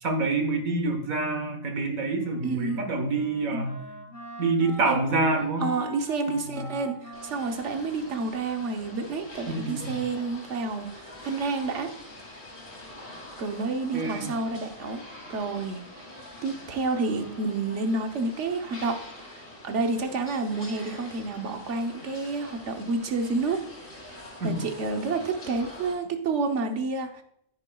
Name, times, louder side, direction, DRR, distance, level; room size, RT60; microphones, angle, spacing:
voice 1, 0.0-3.8 4.4-5.7 6.3-6.7 9.5-10.0 13.9-14.4 24.4-24.6, right 3 dB, 75° right, 4 dB, 1.7 m, -27 dB
Wind instrument woodwind instrument, 2.1-9.3, left 1 dB, 65° left, 2.5 m, -43 dB
voice 2, 2.4-2.8 3.5-3.7 4.8-5.0 5.6-11.9 13.4-15.0 15.3-15.8 16.4-19.0 19.6-23.6 24.4-27.2, right 3 dB, 60° right, 5 dB, 1.2 m, -29 dB
sound 1, 7.1-25.9, left 1 dB, 25° left, 2.8 m, -45 dB
9.8 x 9.6 x 2.3 m, 0.73 s
omnidirectional pair, 1.5 m